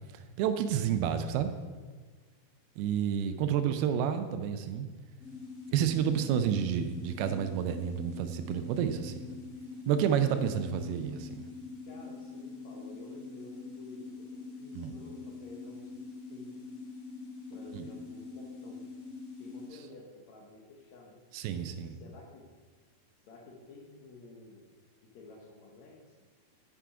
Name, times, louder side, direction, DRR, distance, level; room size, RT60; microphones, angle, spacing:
voice 1, 0.4-1.5 2.8-4.9 5.7-9.2 9.9-11.4 14.8-14.9 17.7-17.8 21.3-21.9, right 8 dB, 80° right, 8 dB, 2.4 m, -30 dB
sound 1, 5.2-19.7, left 4 dB, 60° left, 3.8 m, -44 dB
voice 2, 11.8-16.5 17.5-18.9 19.4-22.4 23.3-24.7 25.0-26.2, left 2 dB, 75° left, -1 dB, 1.6 m, -52 dB
8.4 x 5.8 x 4.8 m, 1.4 s
omnidirectional pair, 4.6 m